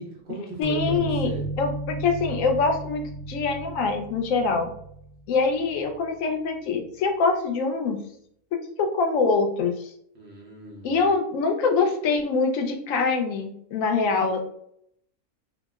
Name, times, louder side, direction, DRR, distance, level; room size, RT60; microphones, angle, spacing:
voice 1, 0.0-1.4 10.1-11.0, right 2 dB, 50° right, -2 dB, 0.7 m, -37 dB
voice 2, 0.6-1.3 1.6-4.7 5.3-8.0 8.8-9.9 10.8-14.4, left 4 dB, 70° left, 4 dB, 0.8 m, -24 dB
sound 1, 0.6-6.1, right 2 dB, 30° left, 0.7 m, -34 dB
2.8 x 2.0 x 3.4 m, 0.69 s
omnidirectional pair, 1.6 m